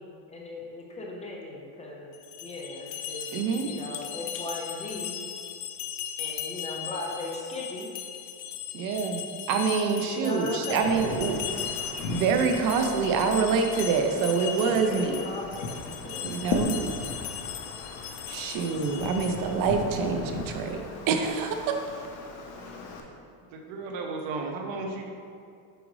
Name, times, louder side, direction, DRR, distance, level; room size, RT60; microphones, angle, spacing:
voice 1, 0.0-2.1 2.4-3.3 3.6-5.2 6.2-7.9 10.0-11.0 14.6-16.4 22.5-22.6, left 2 dB, 15° left, -2 dB, 0.3 m, -37 dB
sound 1, 2.1-19.6, left 9 dB, 85° left, 0.8 m, -38 dB
voice 2, 3.3-3.7 8.7-11.7 12.1-15.2 16.2-16.8 18.3-21.8, right 5 dB, 45° right, 5 dB, 0.6 m, -26 dB
Wind, 10.7-23.0, left 3 dB, 65° left, 1.0 m, -37 dB
voice 3, 23.5-25.1, right 3 dB, 65° right, 2 dB, 1.0 m, -34 dB
7.9 x 4.9 x 3.1 m, 2.3 s
cardioid pair, 160°, 49 cm